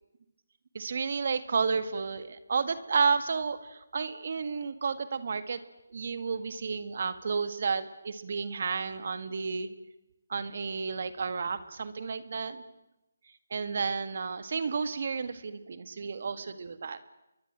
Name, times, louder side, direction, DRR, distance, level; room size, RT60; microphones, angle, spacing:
voice 1, 0.7-5.6 5.9-9.7 10.3-12.6 13.5-17.2, right 5 dB, 55° right, 12 dB, 1.9 m, -31 dB
29.5 x 22.0 x 7.6 m, 0.91 s
figure-of-eight pair, 155°, 0 cm